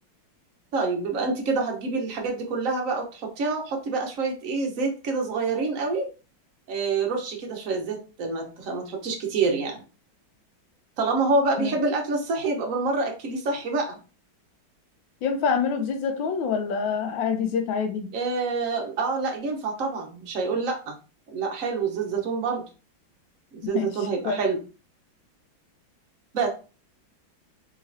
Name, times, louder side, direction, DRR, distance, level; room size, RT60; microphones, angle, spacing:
voice 1, 0.7-6.1 6.7-9.8 11.0-14.0 18.1-21.0 21.3-22.6 23.5-24.6 26.3-26.5, right 4 dB, 50° right, 1.1 m, -27 dB
voice 2, 15.2-18.1 23.6-23.9 24.2-24.4, left 6 dB, 75° left, 1.4 m, -26 dB
3.8 x 3.1 x 2.6 m
omnidirectional pair, 2.2 m